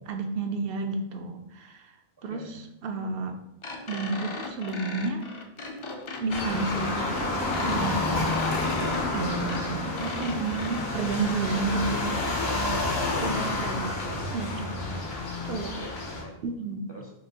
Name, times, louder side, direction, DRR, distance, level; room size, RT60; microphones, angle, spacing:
voice 1, 0.1-2.0 2.2-3.4 3.9-5.3 6.2-8.6 9.1-12.2 13.2-15.0 15.4-15.7 16.4-16.9, right 3 dB, 70° right, 5 dB, 0.8 m, -31 dB
sound 1, 3.6-10.8, left 3 dB, 45° left, 0.4 m, -38 dB
sound 2, 6.3-16.2, left 2 dB, 80° left, 1.1 m, -29 dB
voice 2, 12.8-13.6 15.6-16.3 16.9-17.1, right 1 dB, 35° right, -2 dB, 0.5 m, -43 dB
6.0 x 2.5 x 2.8 m, 0.86 s
omnidirectional pair, 1.0 m